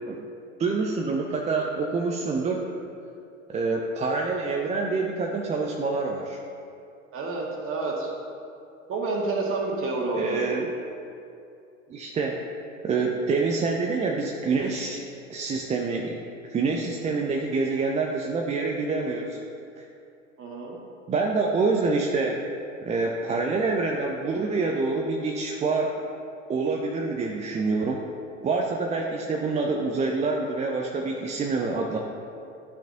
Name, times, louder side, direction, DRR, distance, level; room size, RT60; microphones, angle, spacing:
voice 1, 0.6-2.6 3.5-6.4 10.1-10.7 11.9-12.4 12.8-15.0 15.3-16.2 16.5-19.4 19.8-19.9 21.1-22.4 22.8-25.9 26.5-28.0 28.4-32.0, right 3 dB, 20° right, 0 dB, 0.5 m, -26 dB
voice 2, 7.1-8.1 8.9-10.5 20.4-20.8, right 3 dB, 35° right, -1 dB, 1.8 m, -29 dB
11.5 x 6.0 x 2.8 m, 2.6 s
figure-of-eight pair, 85°, 38 cm